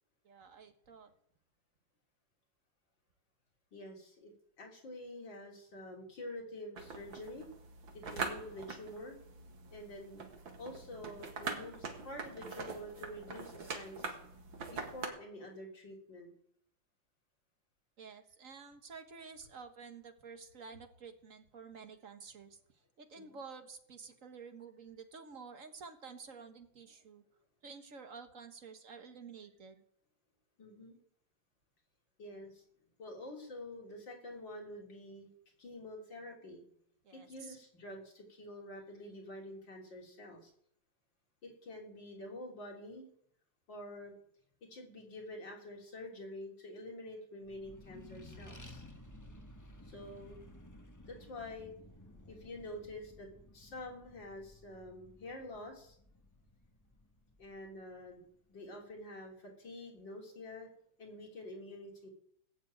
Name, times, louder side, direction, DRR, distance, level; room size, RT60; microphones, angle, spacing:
voice 1, 0.2-1.1 18.0-22.6 23.0-27.2 27.6-29.8 37.0-37.6, right 5 dB, 45° right, 7 dB, 1.7 m, -51 dB
voice 2, 3.7-4.3 4.6-7.5 7.9-9.2 9.7-10.2 10.6-14.1 14.7-16.3 23.1-23.4 30.6-31.0 32.2-32.6 33.0-35.3 35.6-36.6 37.1-40.5 41.4-43.1 43.7-44.1 44.7-48.8 49.8-50.4 51.1-51.7 52.0-53.3 53.5-56.0 57.4-58.2 58.5-60.7 61.0-62.1, left 1 dB, 70° left, 0 dB, 4.3 m, -47 dB
sound 1, 6.8-15.1, right 4 dB, 80° right, 2.6 m, -44 dB
Accelerating revving vroom, 47.4-58.4, left 1 dB, 15° left, 0.8 m, -55 dB
18.5 x 7.5 x 8.8 m, 0.68 s
omnidirectional pair, 2.1 m